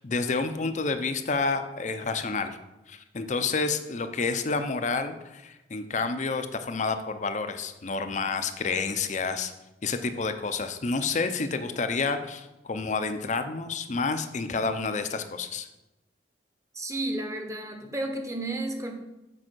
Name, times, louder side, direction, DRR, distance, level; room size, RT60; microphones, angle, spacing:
voice 1, 0.0-2.6 2.9-9.5 9.8-15.7, left 4 dB, 45° left, 8 dB, 0.6 m, -29 dB
voice 2, 16.7-18.9, right 2 dB, 20° right, 4 dB, 1.0 m, -32 dB
7.6 x 4.8 x 6.1 m, 0.98 s
head